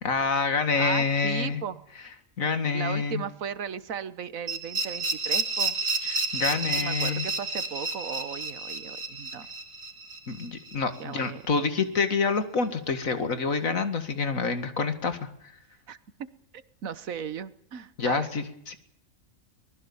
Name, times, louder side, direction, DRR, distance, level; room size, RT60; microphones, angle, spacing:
voice 1, 0.0-1.6 2.4-3.2 6.0-7.3 10.3-15.2 18.0-18.8, left 4 dB, 85° left, 9 dB, 2.4 m, -27 dB
voice 2, 0.8-1.8 2.7-5.8 6.8-9.5 11.0-11.4 15.9-16.0 16.5-18.3, right 7 dB, 85° right, 15 dB, 1.5 m, -36 dB
sound 1, 4.5-11.3, right 3 dB, 45° right, 2.7 m, -31 dB
24.0 x 19.5 x 7.1 m, 0.71 s
omnidirectional pair, 1.4 m